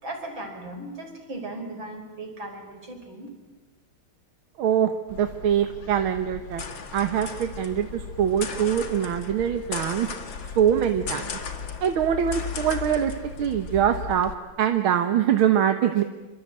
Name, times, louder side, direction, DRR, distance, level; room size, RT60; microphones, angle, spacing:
voice 1, 0.0-3.3, right 2 dB, 65° right, 4 dB, 5.6 m, -37 dB
voice 2, 4.6-6.6 6.9-10.1 10.6-11.4 11.8-13.1 13.4-14.3 14.6-16.0, right 9 dB, 85° right, 7 dB, 2.0 m, -23 dB
sound 1, 5.1-14.3, left 6 dB, 65° left, 2.7 m, -36 dB
26.0 x 25.5 x 8.9 m, 1.2 s
omnidirectional pair, 2.3 m